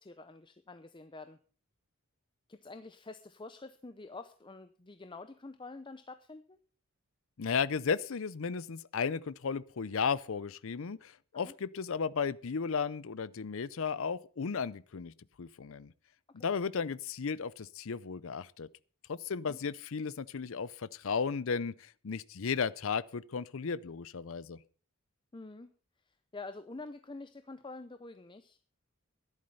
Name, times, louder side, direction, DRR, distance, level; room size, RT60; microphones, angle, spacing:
voice 1, 0.0-1.4 2.5-6.6 11.3-11.5 16.3-16.5 19.3-19.6 25.3-25.7 26.1-28.6, left 3 dB, 20° left, 0.6 m, -47 dB
voice 2, 7.4-15.1 15.4-15.9 16.3-18.7 19.1-24.6, left 5 dB, 65° left, 0.5 m, -34 dB
13.0 x 11.0 x 5.5 m
head